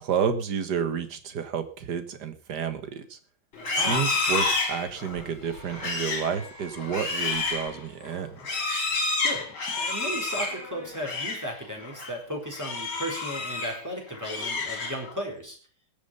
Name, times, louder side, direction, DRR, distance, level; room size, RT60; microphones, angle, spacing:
voice 1, 0.0-3.2 3.7-8.4, right 7 dB, 50° right, 9 dB, 1.9 m, -30 dB
Livestock farm animals working animals, 3.5-11.5 11.8-12.1 12.5-13.8 14.1-15.2, left 3 dB, 65° left, 4.0 m, -30 dB
voice 2, 3.8-4.1 9.2-15.6, equal, 10° right, 0 dB, 4.2 m, -35 dB
20.5 x 7.3 x 5.5 m, 0.40 s
omnidirectional pair, 2.4 m